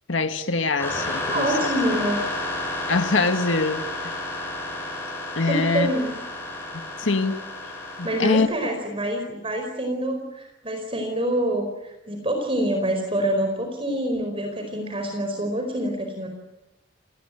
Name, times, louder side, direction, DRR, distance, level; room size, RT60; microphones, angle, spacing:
voice 1, 0.1-1.5 2.9-4.1 5.4-5.9 6.7-7.4 8.0-8.5, left 3 dB, 90° left, 7 dB, 1.9 m, -23 dB
sound 1, 0.8-8.4, left 2 dB, 15° left, 7.7 m, -31 dB
voice 2, 1.3-2.2 5.4-6.1 8.0-16.3, right 1 dB, 30° right, 4 dB, 4.7 m, -26 dB
29.0 x 20.0 x 9.1 m, 0.94 s
head